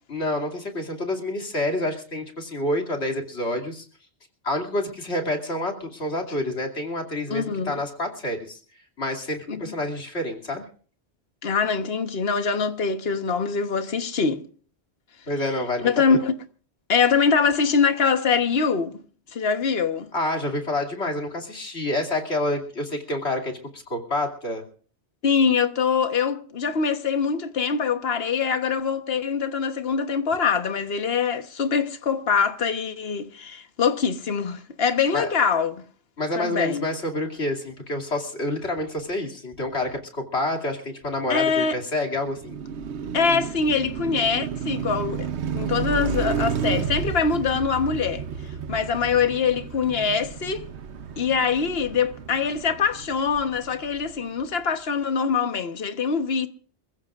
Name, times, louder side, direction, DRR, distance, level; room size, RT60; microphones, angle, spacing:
voice 1, 0.1-3.8 4.4-8.6 9.0-10.6 15.3-16.2 20.1-24.6 35.1-35.3 36.2-42.6, left 1 dB, 80° left, 2.9 m, -28 dB
voice 2, 7.3-7.7 9.5-9.6 11.4-14.4 15.8-16.4 16.9-19.0 19.3-20.1 25.2-35.7 36.4-36.9 41.3-41.8 43.1-48.2 48.7-50.7 51.2-56.5, left 5 dB, 65° left, 1.4 m, -23 dB
Car passing by, 42.2-54.4, right 7 dB, 90° right, 1.1 m, -32 dB
27.5 x 15.5 x 2.5 m
omnidirectional pair, 1.1 m